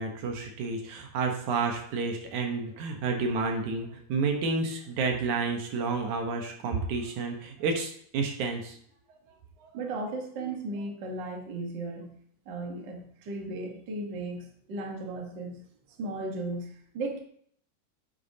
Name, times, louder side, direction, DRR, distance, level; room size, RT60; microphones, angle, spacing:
voice 1, 0.0-8.8 9.6-9.7, right 4 dB, 65° right, 3 dB, 2.1 m, -30 dB
voice 2, 9.7-12.2 12.4-15.6 16.0-17.2, right 2 dB, 80° right, 1 dB, 1.0 m, -36 dB
9.4 x 8.6 x 2.8 m, 0.63 s
omnidirectional pair, 4.4 m